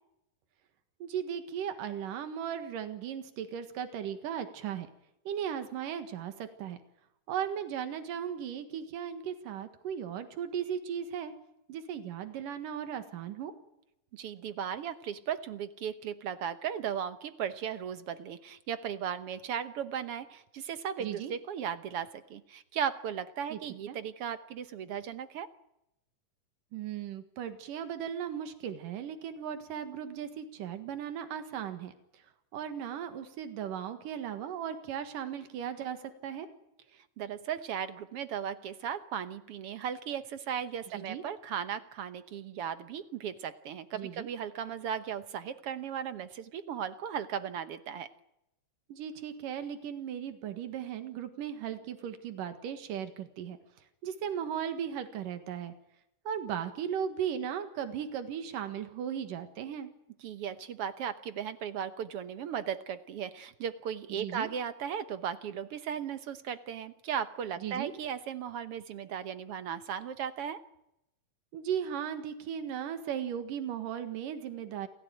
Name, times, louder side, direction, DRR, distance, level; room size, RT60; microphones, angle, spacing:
voice 1, 1.0-4.9 5.3-6.8 7.3-11.3 11.7-13.5 21.0-21.3 23.5-23.6 23.9-24.0 26.7-32.2 32.5-36.5 40.9-41.2 43.9-44.3 48.9-53.6 54.0-55.7 56.3-59.9 64.1-64.5 67.6-67.9 71.5-74.9, right 8 dB, 85° right, 9 dB, 3.3 m, -37 dB
voice 2, 14.1-25.5 37.2-48.1 60.2-70.6, right 8 dB, 65° right, 12 dB, 1.6 m, -36 dB
28.0 x 16.0 x 9.2 m, 0.83 s
omnidirectional pair, 3.7 m